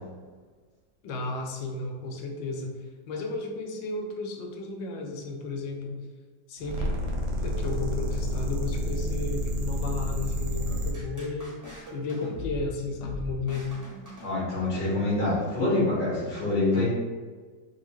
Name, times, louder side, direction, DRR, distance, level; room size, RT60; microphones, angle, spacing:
voice 1, 1.0-6.0 6.5-6.9 7.4-11.6 11.9-13.7, left 3 dB, 85° left, 1 dB, 1.3 m, -33 dB
sound 1, 6.6-10.9, left 1 dB, 90° right, 1.3 m, -29 dB
sound 2, 10.7-14.9, left 2 dB, 25° right, 0.4 m, -40 dB
voice 2, 14.2-16.8, left 2 dB, 65° left, -7 dB, 2.1 m, -26 dB
4.2 x 2.3 x 2.9 m, 1.4 s
omnidirectional pair, 2.0 m